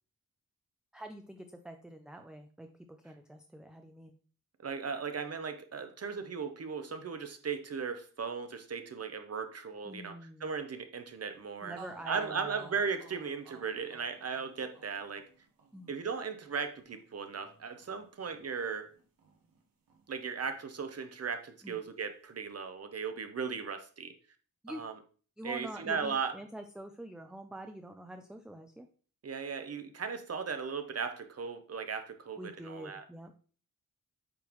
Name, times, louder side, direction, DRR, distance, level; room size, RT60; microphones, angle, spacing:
voice 1, 0.9-2.7 3.0-4.2 9.9-10.5 11.6-12.7 15.7-15.9 21.6-21.8 24.6-24.8 25.4-28.9 32.4-33.3, right 1 dB, ahead, 5 dB, 0.4 m, -46 dB
voice 2, 4.6-11.8 12.1-15.3 15.9-18.9 20.1-24.1 24.7-25.0 25.4-26.4 29.2-33.0, right 5 dB, 45° right, 8 dB, 0.7 m, -37 dB
sound 1, 11.3-11.4 11.8-19.6 19.9-21.0, right 4 dB, 85° right, 1.2 m, -57 dB
8.6 x 3.7 x 3.0 m, 0.40 s
wide cardioid pair, 160°, 34 cm